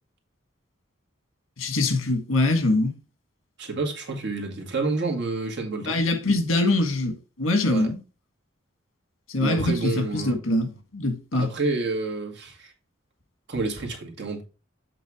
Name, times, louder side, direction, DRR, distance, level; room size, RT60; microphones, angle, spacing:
voice 1, 1.6-2.9 5.8-8.0 9.3-11.5, left 2 dB, 80° left, 1.7 m, -23 dB
voice 2, 3.6-6.0 7.7-7.9 9.4-10.4 11.3-12.7 13.5-14.4, right 3 dB, 60° right, 2.0 m, -29 dB
7.9 x 3.5 x 4.9 m
head